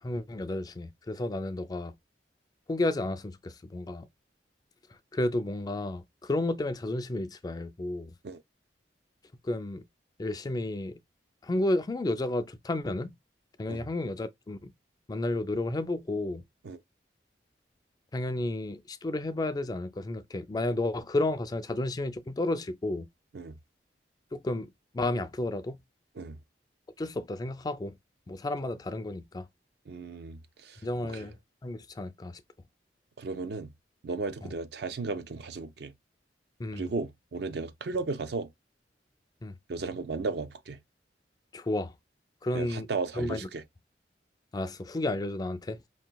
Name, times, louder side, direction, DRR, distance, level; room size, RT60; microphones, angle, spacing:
voice 1, 0.0-1.9 2.7-4.1 4.9-8.1 9.4-9.8 10.2-11.0 11.4-13.2 13.6-14.7 15.1-16.5 18.1-23.1 24.3-25.8 27.0-27.9 28.3-29.5 30.8-32.4 34.4-34.5 36.6-36.9 39.4-39.6 41.5-41.9 42.4-42.9 43.1-43.5 44.5-45.8, left 2 dB, 20° left, 0.3 m, -32 dB
voice 2, 29.9-31.3 33.2-33.7 34.0-35.9 36.7-38.5 39.7-40.8 42.5-43.6, right 3 dB, 65° right, 0.5 m, -35 dB
5.2 x 2.9 x 2.2 m
head